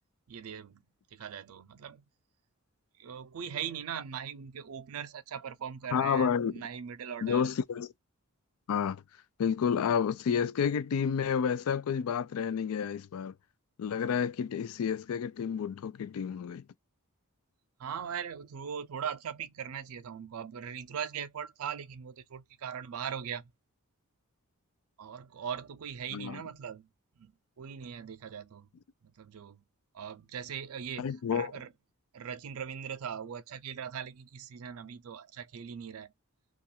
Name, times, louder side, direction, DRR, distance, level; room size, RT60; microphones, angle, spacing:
voice 1, 0.3-0.8 1.1-2.0 3.0-7.4 17.8-23.5 25.0-26.9 27.2-27.3 27.6-28.7 29.0-29.6 29.9-31.7 32.1-36.1, right 8 dB, 75° right, 0.4 m, -40 dB
voice 2, 5.9-6.6 7.2-7.9 8.7-9.0 9.4-13.3 13.8-16.6 26.1-26.4 31.0-31.5, left 7 dB, 75° left, 0.3 m, -30 dB
2.3 x 2.3 x 2.7 m
head